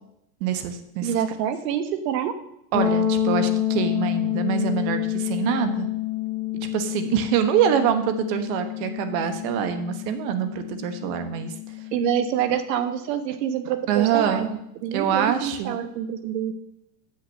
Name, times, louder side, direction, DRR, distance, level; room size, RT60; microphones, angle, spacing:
voice 1, 0.4-1.1 2.7-5.9 6.7-11.5 13.9-14.5 14.9-15.8, right 9 dB, 60° right, 9 dB, 1.3 m, -25 dB
voice 2, 1.0-2.3 11.9-16.5, right 9 dB, 80° right, 10 dB, 1.3 m, -26 dB
sound 1, 2.7-12.4, left 11 dB, 5° right, 2.3 m, -28 dB
8.2 x 5.8 x 6.4 m, 0.80 s
supercardioid pair, 120°, 49 cm